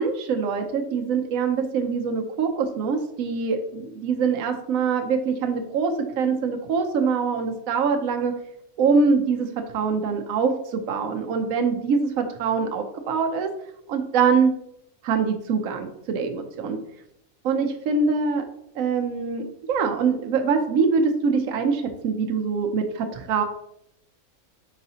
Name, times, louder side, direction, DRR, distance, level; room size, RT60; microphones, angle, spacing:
voice 1, 0.0-8.3 8.8-9.5 9.7-13.5 13.9-14.5 15.0-16.8 17.4-18.4 18.8-23.4, right 5 dB, 70° right, 5 dB, 1.0 m, -24 dB
4.7 x 4.1 x 2.7 m, 0.75 s
omnidirectional pair, 1.6 m